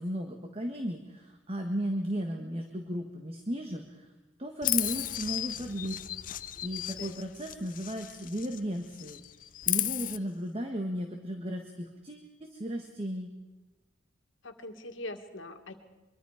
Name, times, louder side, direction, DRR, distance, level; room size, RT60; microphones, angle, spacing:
voice 1, 0.0-4.1 4.4-6.0 6.6-9.2 9.7-13.3, equal, 30° right, 4 dB, 1.6 m, -35 dB
Chirp tweet, 4.6-8.6 8.9-10.2, left 14 dB, 45° left, 0.6 m, -34 dB
voice 2, 14.4-15.7, left 2 dB, 75° left, 6 dB, 2.1 m, -42 dB
24.0 x 23.5 x 5.1 m, 1.2 s
head